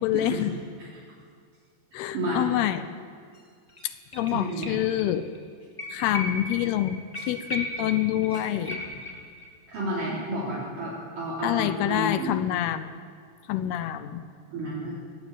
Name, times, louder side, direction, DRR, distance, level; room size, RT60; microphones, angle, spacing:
voice 1, 0.0-0.5 1.9-2.9 3.8-5.3 5.9-7.0 7.3-8.8 11.4-13.0 13.5-14.2, left 12 dB, 80° left, 12 dB, 2.7 m, -27 dB
voice 2, 2.1-2.6 4.3-4.7 9.7-12.3 14.5-14.9, right 1 dB, 50° right, -6 dB, 5.2 m, -31 dB
sound 1, 3.3-3.4 3.7-5.1 5.3-5.4 5.8-9.5 9.8-9.9, left 1 dB, 10° left, 3.5 m, -36 dB
22.0 x 17.0 x 9.2 m, 2.1 s
omnidirectional pair, 4.8 m